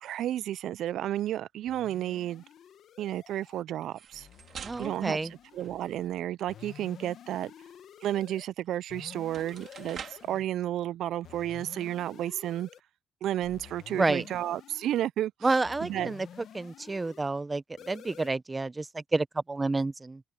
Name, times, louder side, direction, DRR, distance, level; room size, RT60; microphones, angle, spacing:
voice 1, 0.0-2.4 3.0-4.3 4.8-5.2 5.5-7.5 8.0-12.7 13.2-15.3 15.8-16.1, right 12 dB, 80° right, 0.3 m, -32 dB
sound 1, 1.7-3.6 4.1-6.1 6.5-8.5 8.9-10.5 11.2-12.8 13.4-15.1 15.6-17.2 17.8-18.3, left 9 dB, 70° left, 1.4 m, -50 dB
sound 2, 3.8-6.2 8.7-8.8 9.2-10.4, right 7 dB, 55° right, 2.6 m, -46 dB
voice 2, 4.6-5.3 13.9-14.2 15.4-16.3 16.5-20.2, right 3 dB, 20° right, 0.6 m, -29 dB
cardioid pair, 90°, 0 cm